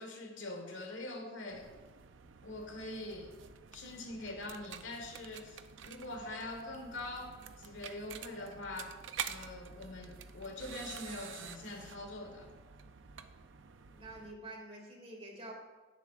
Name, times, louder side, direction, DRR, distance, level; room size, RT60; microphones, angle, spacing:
voice 1, 0.0-1.7 2.4-3.4 3.7-9.0 9.3-12.5, left 2 dB, 80° left, 3 dB, 1.5 m, -44 dB
sound 1, 1.5-14.3, right 7 dB, 90° right, 0.6 m, -48 dB
voice 2, 13.9-15.5, right 1 dB, 35° right, -1 dB, 2.3 m, -47 dB
17.0 x 7.2 x 2.5 m, 1.3 s
head